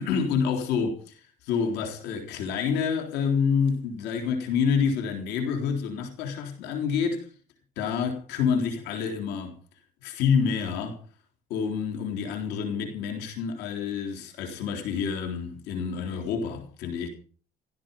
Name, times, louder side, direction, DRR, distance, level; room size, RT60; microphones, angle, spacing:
voice 1, 0.0-7.3 7.8-9.5 10.0-11.0 11.5-17.1, left 6 dB, 90° left, 4.0 m, -28 dB
16.0 x 14.5 x 5.4 m
cardioid pair, 110°, 17 cm